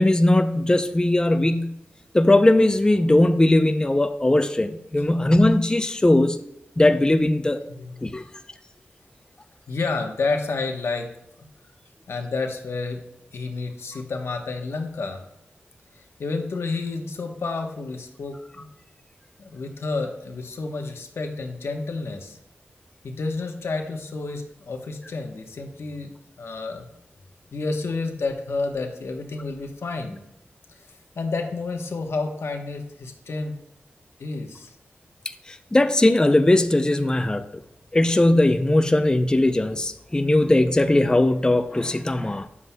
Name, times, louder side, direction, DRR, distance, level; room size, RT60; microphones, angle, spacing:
voice 1, 0.0-1.7 2.1-6.4 6.8-7.6 8.0-8.2 35.5-37.5 37.9-42.5, left 1 dB, 20° left, 8 dB, 0.5 m, -19 dB
voice 2, 7.7-8.2 9.7-11.1 11.4-11.5 12.1-13.0 13.3-15.2 16.0-18.6 19.4-22.4 23.0-26.9 27.5-30.2 31.2-33.5 34.2-34.7, left 3 dB, 85° left, 4 dB, 1.0 m, -30 dB
9.6 x 7.3 x 2.2 m, 0.82 s
wide cardioid pair, 75°, 4 cm